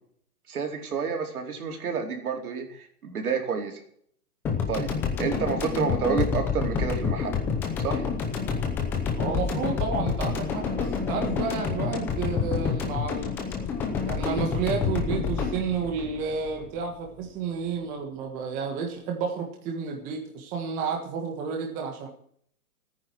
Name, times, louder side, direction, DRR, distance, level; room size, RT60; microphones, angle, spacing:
voice 1, 0.5-3.8 4.7-4.9 5.2-7.3 7.8-8.1, right 5 dB, 70° right, 3 dB, 4.3 m, -29 dB
sound 1, 4.5-16.9, left 6 dB, 5° left, 0.7 m, -28 dB
voice 2, 9.2-13.4 14.1-22.1, right 5 dB, 15° right, 2 dB, 1.6 m, -31 dB
14.5 x 9.5 x 6.2 m, 0.62 s
hypercardioid pair, 170°, 46 cm